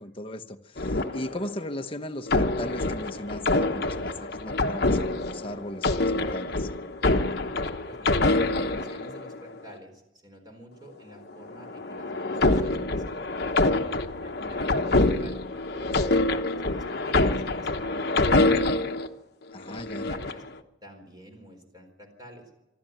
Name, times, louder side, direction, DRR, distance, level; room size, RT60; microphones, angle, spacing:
voice 1, 0.0-6.7 19.5-20.1, left 1 dB, 25° left, 6 dB, 1.0 m, -37 dB
sound 1, 0.8-1.7 2.3-9.5 11.5-19.1 19.7-20.5, left 2 dB, 50° left, 1.1 m, -26 dB
voice 2, 7.9-13.5 14.2-15.4 15.7-18.8 19.6-20.4 20.8-22.5, equal, 20° right, 4 dB, 4.2 m, -48 dB
25.5 x 13.0 x 9.2 m, 0.96 s
head